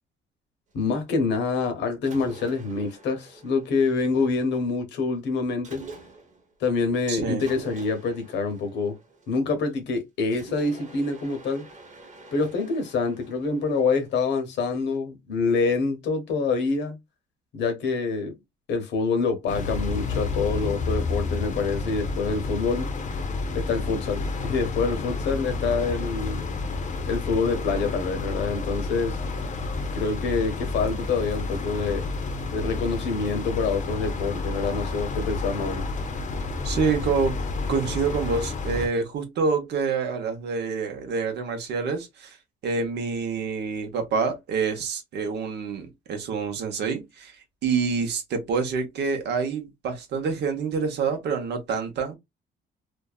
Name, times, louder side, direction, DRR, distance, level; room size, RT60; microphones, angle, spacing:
voice 1, 0.7-5.8 6.6-9.0 9.3-11.6 12.3-17.0 17.5-18.3 18.7-22.9 23.5-26.4 27.1-29.2 29.9-32.0 32.5-35.8, left 4 dB, 85° left, 0.9 m, -26 dB
Mechanisms, 2.0-4.5 5.6-6.5 7.4-9.7 10.3-14.5, right 3 dB, 40° right, 1.0 m, -46 dB
voice 2, 7.1-7.4 36.6-37.4 37.7-42.4 42.6-52.2, right 5 dB, 70° right, 0.8 m, -27 dB
sound 1, 19.5-38.9, left 3 dB, 45° left, 0.6 m, -30 dB
2.6 x 2.2 x 2.3 m
cardioid pair, 100°, 18 cm